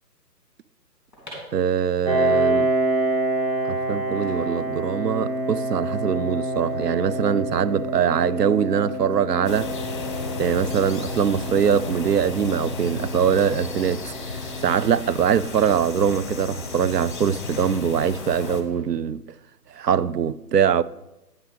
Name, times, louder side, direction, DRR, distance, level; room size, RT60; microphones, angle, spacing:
sound 1, 1.1-13.0 13.3-13.4 13.5-16.4 16.8-17.8 18.4-19.4 19.7-20.0, equal, ahead, 2.2 m, -50 dB
voice 1, 1.5-2.7 3.7-9.7 10.4-19.2 19.7-20.8, right 8 dB, 70° right, 0.5 m, -23 dB
Piano, 2.0-17.4, right 1 dB, 25° right, 1.3 m, -28 dB
sound 2, 9.5-18.6, left 3 dB, 30° left, 0.8 m, -33 dB
9.4 x 5.7 x 5.1 m
figure-of-eight pair, 150°, 50 cm